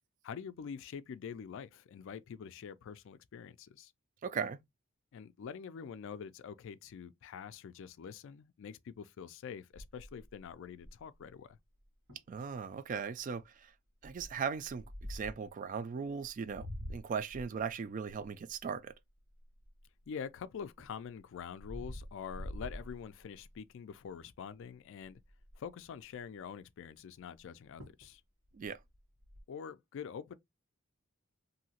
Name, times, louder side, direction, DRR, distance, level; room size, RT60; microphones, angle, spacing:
voice 1, 0.2-3.9 5.1-11.6 20.1-25.2 25.6-28.2 29.5-30.3, left 7 dB, 65° left, 0.3 m, -45 dB
voice 2, 4.2-4.6 12.3-13.7 14.0-18.9 28.5-28.8, right 6 dB, 40° right, 0.3 m, -38 dB
sound 1, 9.8-11.2 11.8-11.9 12.1-12.4 12.9-13.2 14.0-15.5 16.2-20.1 20.5-23.6 24.0-24.3 24.6-24.7 25.0-25.7 27.4-27.5 27.8-28.1 28.4-29.4, equal, 80° right, 1.4 m, -47 dB
2.8 x 2.7 x 2.8 m
head